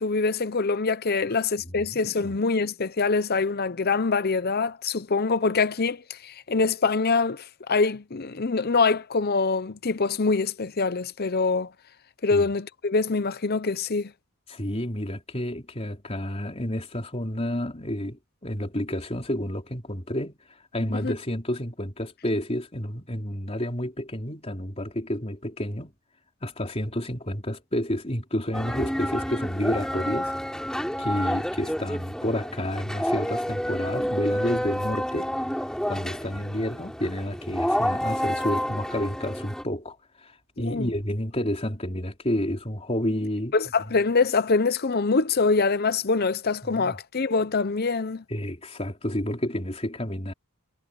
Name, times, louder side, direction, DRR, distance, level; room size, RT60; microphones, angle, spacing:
voice 1, 0.0-11.7 12.2-14.1 20.9-21.1 40.6-40.9 43.5-48.2, left 4 dB, 45° left, 0.8 m, -24 dB
voice 2, 1.6-2.3 12.3-12.5 14.5-25.9 26.4-30.3 31.0-35.3 35.9-43.6 46.7-47.0 48.3-50.3, left 1 dB, 30° left, 3.8 m, -30 dB
sound 1, 28.5-39.6, equal, 5° left, 7.7 m, -29 dB
head